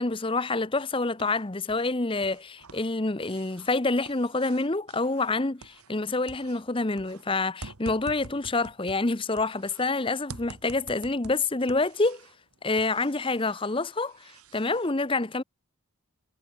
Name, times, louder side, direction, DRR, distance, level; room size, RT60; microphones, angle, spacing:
voice 1, 0.0-12.3 12.6-15.4, left 3 dB, 25° left, 0.8 m, -27 dB
sound 1, 0.8-1.9 2.2-6.0 6.3-9.9 10.3-12.4 12.8-14.9, right 3 dB, 90° right, 2.2 m, -48 dB
head